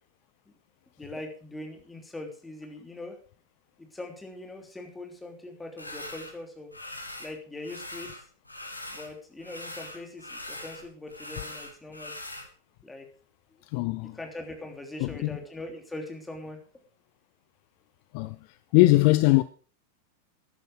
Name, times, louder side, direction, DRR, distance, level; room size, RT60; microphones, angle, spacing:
voice 1, 1.0-3.2 3.8-6.7 7.2-8.2 8.9-12.1 12.8-13.1 13.5-13.6 14.0-16.6, left 2 dB, 10° left, 3.2 m, -41 dB
sound 1, 5.8-6.3 6.7-7.3 7.6-9.1 9.4-12.5, left 1 dB, 85° left, 2.0 m, -41 dB
voice 2, 13.7-14.2 15.0-15.4 18.1-18.4 18.7-19.4, left 20 dB, 45° left, 0.6 m, -21 dB
13.5 x 11.0 x 4.9 m
figure-of-eight pair, 90°, 0 cm